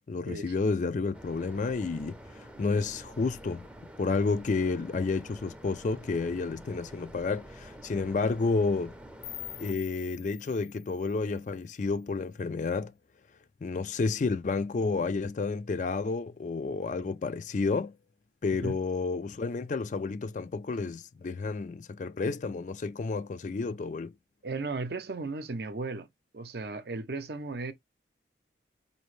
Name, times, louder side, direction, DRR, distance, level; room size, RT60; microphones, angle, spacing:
voice 1, 0.1-3.7 4.0-9.0 9.6-12.9 13.6-17.9 18.4-24.1, left 4 dB, 40° left, 0.4 m, -30 dB
sound 1, 1.1-9.7, equal, 5° right, 0.6 m, -48 dB
sound 2, 9.2-12.2, left 13 dB, 85° left, 0.8 m, -46 dB
voice 2, 24.4-26.1 26.3-27.7, right 3 dB, 55° right, 0.6 m, -35 dB
5.0 x 2.7 x 3.2 m
head